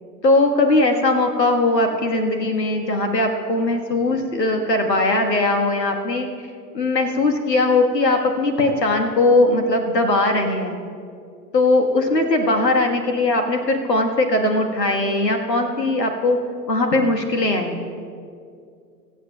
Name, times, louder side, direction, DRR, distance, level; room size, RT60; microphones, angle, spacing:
voice 1, 0.2-6.3 6.7-10.8 11.5-16.4 16.7-17.8, left 2 dB, 75° left, 4 dB, 1.5 m, -19 dB
23.5 x 8.3 x 2.2 m, 2.3 s
figure-of-eight pair, 110°, 50 cm